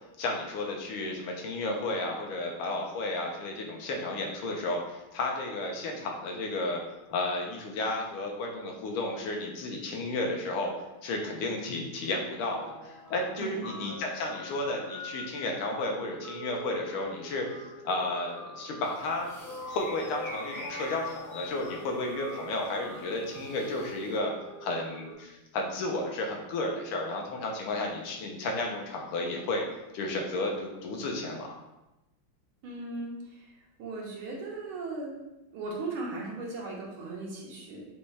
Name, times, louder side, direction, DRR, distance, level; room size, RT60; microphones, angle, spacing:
voice 1, 0.2-6.8 7.1-10.7 11.0-17.5 17.8-19.3 19.6-24.3 24.6-29.6 29.9-31.5, left 2 dB, 85° left, 1 dB, 1.7 m, -32 dB
Guitar, 12.4-25.1, left 1 dB, 65° left, 1.7 m, -44 dB
voice 2, 13.4-13.7 32.6-35.2 35.5-37.8, right 3 dB, 80° right, -3 dB, 1.8 m, -38 dB
sound 1, 18.8-24.2, left 1 dB, 45° left, 1.2 m, -47 dB
6.8 x 2.3 x 3.2 m, 0.97 s
omnidirectional pair, 2.3 m